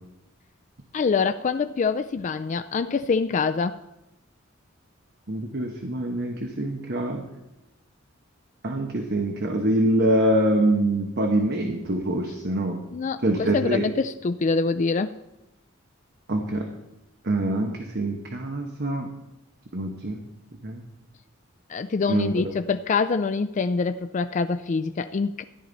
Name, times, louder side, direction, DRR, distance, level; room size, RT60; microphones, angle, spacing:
voice 1, 0.9-3.8 12.9-15.1 21.7-25.4, left 4 dB, 35° left, 9 dB, 0.3 m, -25 dB
voice 2, 5.3-7.2 8.6-12.8 13.2-13.9 16.3-16.7 17.2-19.1 19.7-20.2 20.6-20.8 22.1-22.4, right 1 dB, 55° right, 3 dB, 1.1 m, -25 dB
14.0 x 11.0 x 4.0 m, 0.92 s
head